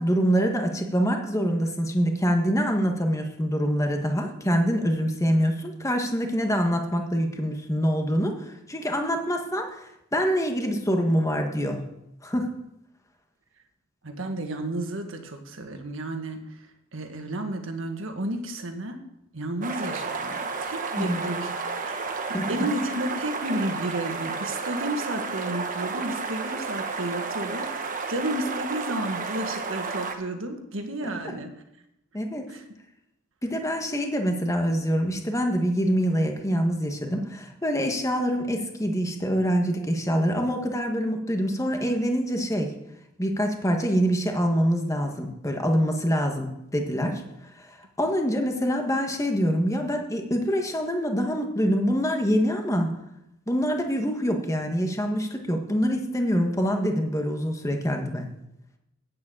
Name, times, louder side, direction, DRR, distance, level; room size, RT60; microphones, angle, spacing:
voice 1, 0.0-9.8 10.1-11.9 12.2-12.5 21.0-21.2 22.3-22.7 31.0-31.1 32.1-32.4 33.4-42.7 43.2-47.2 47.6-52.9 53.5-58.3, equal, 15° left, 3 dB, 1.5 m, -25 dB
voice 2, 14.0-16.4 16.9-19.0 19.3-21.5 21.8-22.1 22.5-31.5 32.5-32.6, right 1 dB, 70° right, 5 dB, 1.6 m, -32 dB
sound 1, 19.6-30.2, right 4 dB, 40° right, 1.2 m, -32 dB
8.9 x 7.5 x 8.6 m, 0.84 s
head